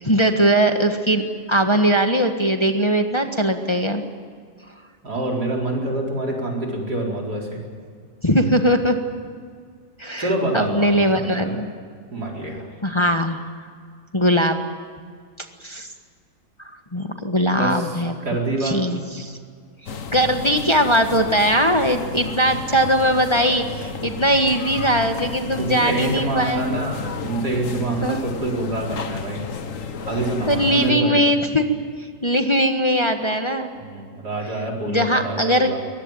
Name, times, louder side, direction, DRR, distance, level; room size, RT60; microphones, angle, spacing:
voice 1, 0.0-4.0 8.2-9.0 10.0-11.7 12.8-13.4 14.1-14.6 15.6-15.9 16.6-18.1 18.6-19.4 20.1-26.7 28.0-28.2 30.5-31.7 32.0-33.7 34.9-35.7, equal, 20° left, 5 dB, 1.4 m, -20 dB
voice 2, 5.0-7.6 10.2-11.5 12.1-12.7 17.5-18.8 25.6-29.4 30.1-31.2 33.8-35.8, right 2 dB, 85° right, -1 dB, 5.1 m, -26 dB
sound 1, 19.9-30.9, left 5 dB, 55° left, 1.6 m, -32 dB
23.0 x 21.0 x 9.0 m, 2.1 s
omnidirectional pair, 1.7 m